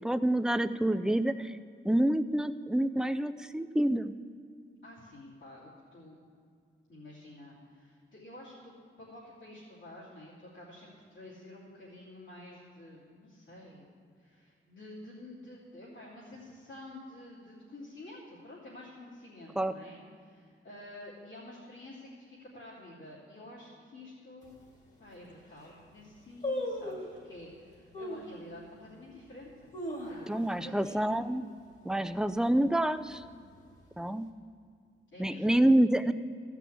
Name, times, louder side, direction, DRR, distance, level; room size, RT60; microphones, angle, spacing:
voice 1, 0.0-1.6 1.8-4.1 19.6-19.7 30.3-31.5 31.8-33.2 34.0-34.3 35.2-36.1, right 1 dB, 5° right, 11 dB, 0.3 m, -27 dB
voice 2, 4.8-6.2 6.9-13.8 14.2-24.5 25.0-29.7 30.1-31.1 35.1-35.6, left 1 dB, 65° left, -10 dB, 3.1 m, -49 dB
sound 1, 24.4-24.5 25.1-25.2 25.4-25.8 26.4-27.2 27.9-28.3 28.9-29.0 29.5-30.6 30.9-31.0 31.3-31.7 32.1-32.5 33.1-33.9 34.1-34.2, left 1 dB, 35° left, 2.0 m, -37 dB
15.0 x 6.0 x 8.3 m, 2.2 s
wide cardioid pair, 155°, 21 cm